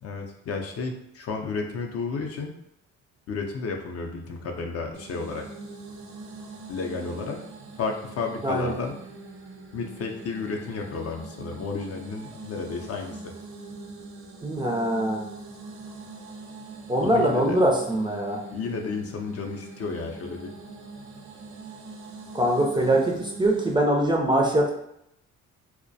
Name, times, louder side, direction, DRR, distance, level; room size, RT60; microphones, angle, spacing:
voice 1, 0.0-2.5 3.3-5.5 6.7-7.4 7.8-9.0 9.7-13.3 17.0-17.6 18.5-20.5, left 4 dB, 50° left, 2 dB, 0.5 m, -32 dB
sound 1, 4.9-23.8, right 3 dB, 65° right, 0.6 m, -43 dB
voice 2, 14.4-15.3 16.9-18.4 22.3-24.7, right 1 dB, 15° right, -1 dB, 0.4 m, -23 dB
2.3 x 2.1 x 2.6 m, 0.78 s
cardioid pair, 90°, 30 cm